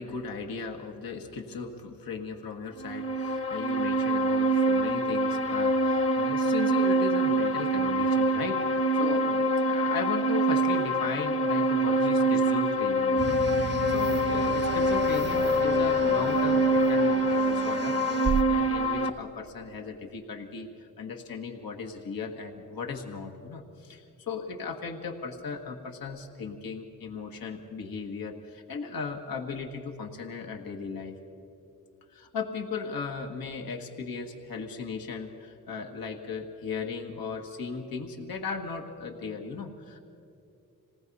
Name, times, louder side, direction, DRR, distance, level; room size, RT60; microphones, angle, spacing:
voice 1, 0.0-18.0 18.5-31.2 32.1-40.0, left 5 dB, 80° left, 3 dB, 1.8 m, -37 dB
sound 1, 2.8-19.1, right 1 dB, 40° left, 1.4 m, -25 dB
sound 2, 13.2-18.4, right 6 dB, 35° right, 0.5 m, -34 dB
26.5 x 18.5 x 5.5 m, 2.6 s
cardioid pair, 70°, 35 cm